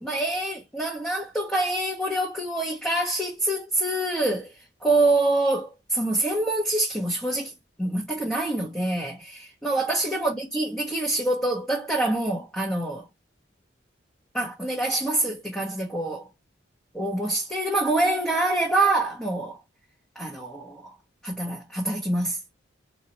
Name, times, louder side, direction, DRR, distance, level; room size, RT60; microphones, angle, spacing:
voice 1, 0.0-4.5 4.8-7.5 7.8-13.0 14.3-16.3 16.9-19.6 20.1-20.9 21.2-22.4, right 2 dB, 5° left, 0.9 m, -26 dB
4.0 x 3.0 x 2.8 m
head